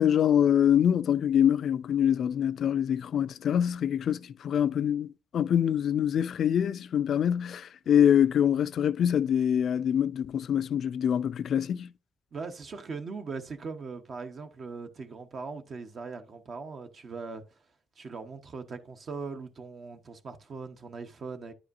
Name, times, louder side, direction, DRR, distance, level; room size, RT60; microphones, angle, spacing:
voice 1, 0.0-11.9, left 9 dB, 60° left, 0.3 m, -25 dB
voice 2, 12.3-17.4 18.0-21.5, right 4 dB, 50° right, 0.8 m, -40 dB
10.0 x 4.8 x 2.6 m
cardioid pair, 90°, 0 cm